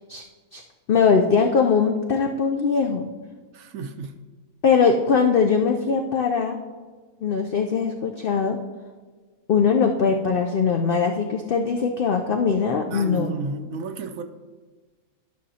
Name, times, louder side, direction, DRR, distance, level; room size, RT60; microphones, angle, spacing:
voice 1, 0.9-3.1 4.6-6.6 7.2-8.6 9.5-13.3, left 5 dB, 80° left, 3 dB, 0.5 m, -21 dB
voice 2, 3.5-4.1 12.9-14.2, right 3 dB, 70° right, 7 dB, 1.0 m, -32 dB
12.0 x 6.2 x 2.8 m, 1.4 s
omnidirectional pair, 1.5 m